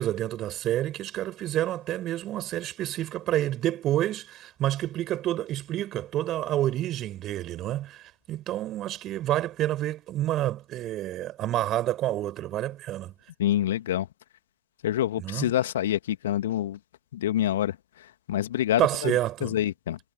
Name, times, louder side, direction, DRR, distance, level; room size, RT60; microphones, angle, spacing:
voice 1, 0.0-13.1 15.2-15.5 18.8-19.6, right 13 dB, 35° right, 6.9 m, -29 dB
voice 2, 13.4-14.1 14.8-16.8 17.1-20.0, left 12 dB, 60° left, 2.4 m, -27 dB
figure-of-eight pair, 90°, 0 cm